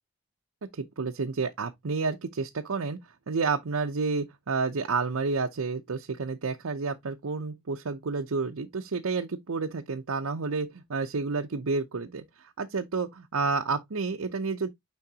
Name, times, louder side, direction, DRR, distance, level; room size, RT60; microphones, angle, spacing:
voice 1, 0.7-3.0 3.3-12.2 12.6-14.7, right 4 dB, 80° right, 0.7 m, -30 dB
9.7 x 3.8 x 2.7 m
head